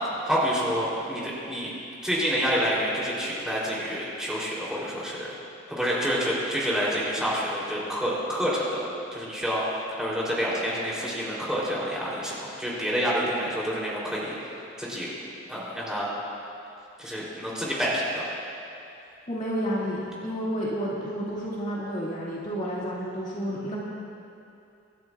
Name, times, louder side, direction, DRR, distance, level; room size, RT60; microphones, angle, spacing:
voice 1, 0.2-1.7 2.0-5.3 5.7-9.6 10.0-15.1 15.5-16.1 17.0-18.3, equal, 5° right, -7 dB, 3.2 m, -28 dB
voice 2, 19.3-23.8, equal, 40° left, -7 dB, 2.1 m, -30 dB
26.0 x 12.0 x 2.4 m, 2.7 s
head